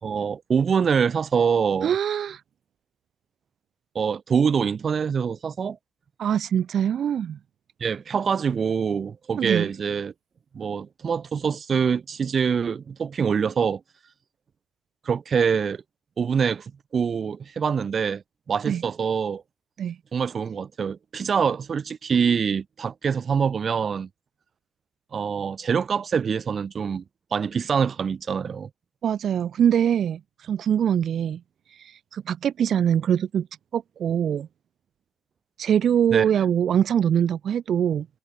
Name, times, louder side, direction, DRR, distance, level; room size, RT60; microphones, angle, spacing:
voice 1, 0.0-1.9 3.9-5.8 7.8-10.1 10.5-13.8 15.0-15.8 16.2-18.2 18.5-19.4 20.1-24.1 25.1-27.0 27.3-28.7 36.1-36.3, right 6 dB, 45° right, 2.5 m, -25 dB
voice 2, 1.8-2.4 6.2-7.4 9.4-9.7 18.7-18.8 19.8-20.0 29.0-31.4 31.7-33.5 33.7-34.5 35.6-38.1, right 9 dB, 60° right, 2.1 m, -23 dB
cardioid pair, 90°, 0 cm